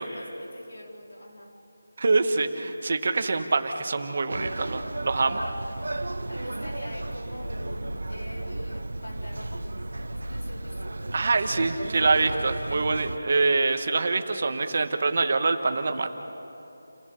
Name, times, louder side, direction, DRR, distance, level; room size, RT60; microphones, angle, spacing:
voice 1, 0.0-1.5 5.8-9.7 10.2-11.9, left 1 dB, 60° left, 0 dB, 3.7 m, -44 dB
voice 2, 2.0-5.4 11.1-16.1, right 3 dB, 30° right, 6 dB, 1.1 m, -25 dB
mah jong parlor outside, 4.3-13.2, right 2 dB, 85° right, 1.1 m, -34 dB
29.0 x 16.5 x 6.9 m, 2.9 s
figure-of-eight pair, 180°, 0 cm